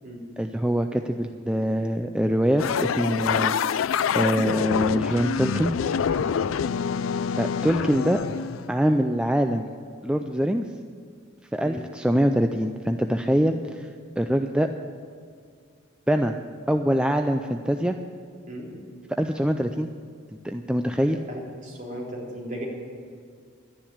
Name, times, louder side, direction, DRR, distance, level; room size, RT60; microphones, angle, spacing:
voice 1, 0.4-3.6 4.1-5.7 7.4-8.2 8.7-9.7 10.0-10.7 11.5-13.9 14.2-14.7 16.1-16.4 16.7-18.0 19.1-19.9 20.4-21.2, equal, 5° right, 6 dB, 0.4 m, -24 dB
sound 1, 2.6-8.7, left 7 dB, 80° left, 0.4 m, -26 dB
voice 2, 21.3-22.6, equal, 40° right, -4 dB, 3.9 m, -36 dB
11.5 x 10.5 x 8.6 m, 2.2 s
head